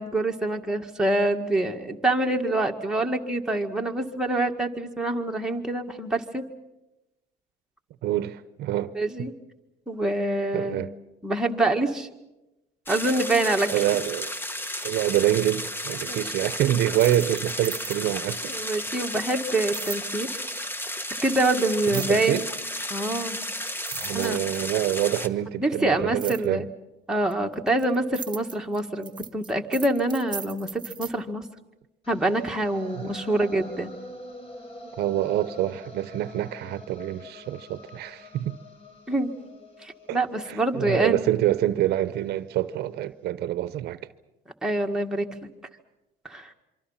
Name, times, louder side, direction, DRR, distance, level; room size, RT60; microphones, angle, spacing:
voice 1, 0.0-6.4 9.0-9.3 9.9-10.8 11.2-12.1 12.9-13.7 16.1-16.2 18.5-20.3 21.2-22.4 22.9-23.4 24.1-24.4 25.6-26.7 27.1-31.4 32.1-33.9 39.1-39.3 39.8-41.3 44.6-45.3 46.2-46.5, right 2 dB, 5° right, 1.9 m, -26 dB
voice 2, 8.0-8.9 10.5-10.9 13.7-14.3 14.8-18.5 21.9-22.4 23.9-26.7 32.9-33.1 35.0-38.6 40.1-40.2 40.5-44.0, right 13 dB, 75° right, 0.8 m, -26 dB
sound 1, 12.9-25.3, left 1 dB, 10° left, 1.2 m, -33 dB
sound 2, 17.0-18.2 19.7-20.1 21.9-22.3 23.3-23.4 23.7-24.8 26.2-26.5 27.3-31.1, right 6 dB, 25° right, 1.0 m, -38 dB
sound 3, 32.0-42.1, left 1 dB, 35° left, 5.6 m, -45 dB
26.5 x 24.5 x 5.8 m
cardioid pair, 110°, 17 cm